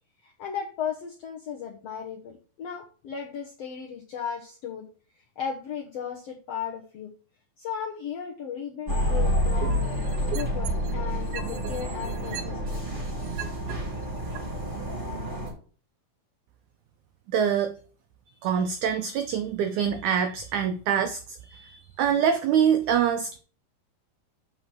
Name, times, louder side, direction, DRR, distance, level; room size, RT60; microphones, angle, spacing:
voice 1, 0.2-4.9 5.1-7.1 7.6-12.8, left 7 dB, 75° left, 0 dB, 1.4 m, -36 dB
sound 1, 8.9-15.5, equal, 20° right, 2.5 m, -29 dB
sound 2, 9.4-11.0 11.3-13.7 14.4-14.5, right 8 dB, 70° right, 2.0 m, -36 dB
voice 2, 17.3-17.7 18.4-21.2 21.5-23.4, right 8 dB, 85° right, 9 dB, 1.7 m, -25 dB
7.0 x 5.5 x 6.2 m, 0.39 s
omnidirectional pair, 4.3 m